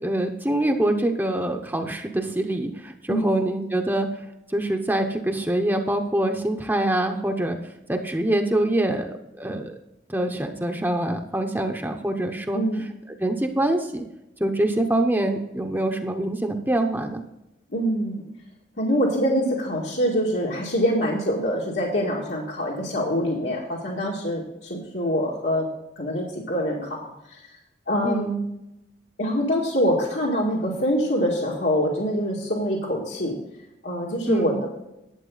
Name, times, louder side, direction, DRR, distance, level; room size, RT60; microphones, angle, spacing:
voice 1, 0.0-4.1 4.5-7.6 7.9-9.7 10.1-12.6 13.2-14.0 14.4-17.2 28.0-28.3 34.3-34.6, right 1 dB, 10° right, 3 dB, 0.8 m, -25 dB
voice 2, 3.1-3.4 12.5-12.9 17.7-18.2 18.8-25.7 26.0-27.1 27.9-28.4 29.2-33.4 33.8-34.7, equal, 80° left, -4 dB, 2.0 m, -25 dB
11.5 x 8.3 x 3.9 m, 0.87 s
head